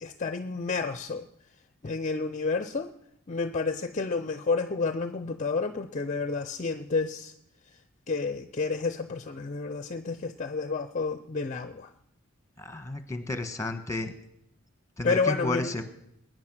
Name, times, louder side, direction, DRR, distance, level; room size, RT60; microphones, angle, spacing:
voice 1, 0.0-1.2 1.8-2.9 3.3-7.3 8.1-11.9 15.0-15.8, left 4 dB, 35° left, 11 dB, 0.5 m, -30 dB
voice 2, 12.6-14.1 15.0-15.8, left 2 dB, 15° left, 10 dB, 1.2 m, -32 dB
21.5 x 9.3 x 6.2 m, 0.76 s
head